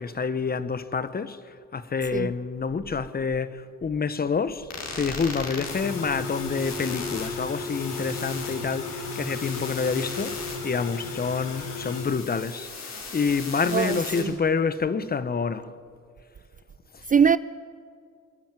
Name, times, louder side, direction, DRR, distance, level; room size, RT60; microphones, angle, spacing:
voice 1, 0.0-1.4 1.7-4.7 4.9-12.7 13.1-15.7 16.9-17.0, left 5 dB, 30° left, 1.0 m, -28 dB
sound 1, 4.7-14.2, left 4 dB, 60° left, 4.4 m, -38 dB
sound 2, 5.6-12.0, left 3 dB, 85° left, 3.6 m, -35 dB
voice 2, 13.7-14.3 17.1-17.4, right 7 dB, 30° right, 0.4 m, -22 dB
27.0 x 10.5 x 9.2 m
cardioid pair, 90°, 30 cm